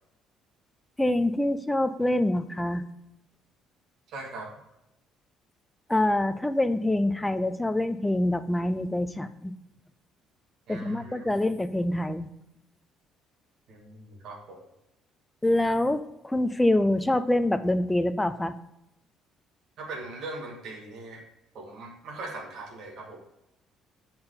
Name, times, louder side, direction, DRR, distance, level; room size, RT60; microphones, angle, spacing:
voice 1, 1.0-2.8 5.9-9.5 10.7-12.3 15.4-18.5, left 1 dB, 5° left, 11 dB, 0.3 m, -25 dB
voice 2, 4.1-4.5 10.7-11.4 13.7-14.6 19.8-21.2 21.5-23.2, right 2 dB, 50° right, -1 dB, 1.5 m, -40 dB
9.6 x 4.4 x 3.7 m, 0.89 s
cardioid pair, 180°, 0 cm